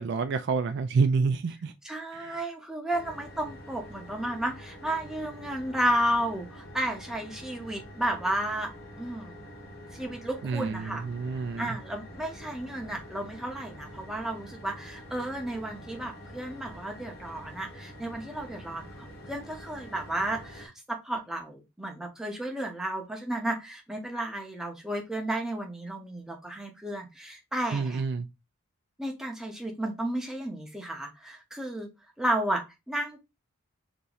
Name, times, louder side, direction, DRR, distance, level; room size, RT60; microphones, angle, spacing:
voice 1, 0.0-1.7 2.1-2.4 10.4-11.8 27.7-28.3, right 4 dB, 50° right, 0.3 m, -28 dB
voice 2, 1.8-8.7 9.0-9.4 9.9-11.0 11.6-18.9 19.3-28.0 29.0-31.9 32.2-33.2, right 1 dB, ahead, 0.7 m, -32 dB
sound 1, 2.9-20.7, equal, 45° left, 1.2 m, -46 dB
2.9 x 2.7 x 3.8 m
head